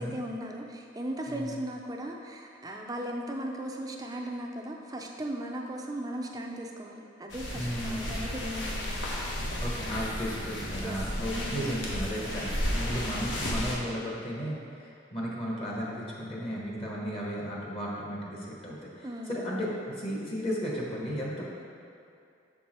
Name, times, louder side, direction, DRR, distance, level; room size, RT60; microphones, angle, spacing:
voice 1, 0.0-9.1 10.8-11.0 11.3-11.7 19.0-19.7, right 1 dB, 20° right, 1 dB, 0.5 m, -37 dB
sound 1, 7.3-13.7, left 1 dB, 75° left, 1.1 m, -33 dB
voice 2, 7.5-8.2 9.6-19.7 20.0-21.4, equal, 30° left, -4 dB, 1.0 m, -34 dB
6.7 x 4.6 x 4.3 m, 2.5 s
head